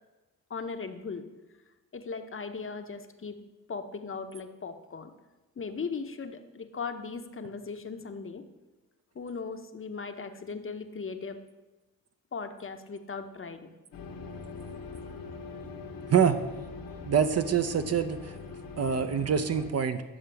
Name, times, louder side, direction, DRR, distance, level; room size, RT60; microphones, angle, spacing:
voice 1, 0.5-1.2 1.9-3.4 3.7-5.1 5.6-8.4 9.1-11.4 12.3-13.7, left 5 dB, 30° left, 7 dB, 0.8 m, -38 dB
sound 1, 13.9-19.7, left 4 dB, 60° left, 1.1 m, -42 dB
voice 2, 17.1-18.3 18.8-20.0, right 7 dB, 40° right, 9 dB, 0.6 m, -25 dB
10.0 x 6.6 x 3.4 m, 1.1 s
hypercardioid pair, 40°, 39 cm